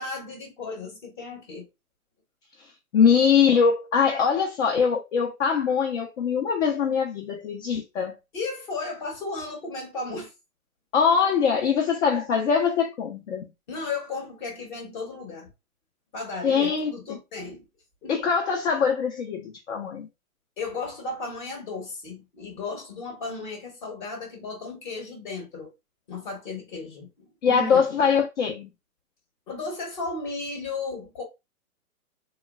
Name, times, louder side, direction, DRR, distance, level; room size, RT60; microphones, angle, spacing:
voice 1, 0.0-1.7 8.3-10.3 13.7-15.5 16.1-17.7 18.0-18.1 20.6-25.7 26.1-28.2 29.5-31.2, left 3 dB, 35° left, 0.9 m, -35 dB
voice 2, 2.9-8.1 10.9-13.5 16.4-17.2 18.1-20.1 27.4-28.7, left 6 dB, 55° left, 0.6 m, -22 dB
3.1 x 2.2 x 2.2 m
hypercardioid pair, 140°, 45 cm